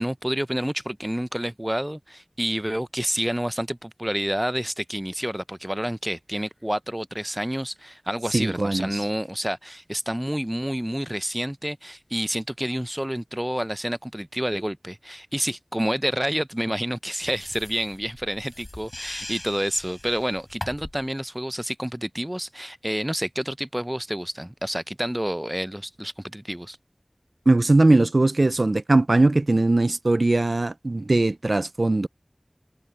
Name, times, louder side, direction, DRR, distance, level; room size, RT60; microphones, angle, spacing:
voice 1, 0.0-26.8, equal, 15° right, 0.5 m, -29 dB
voice 2, 8.3-9.0 27.5-32.1, right 2 dB, 90° right, 0.5 m, -20 dB
sound 1, 17.2-21.1, left 1 dB, 45° left, 3.5 m, -40 dB
wide cardioid pair, 40°, 0 cm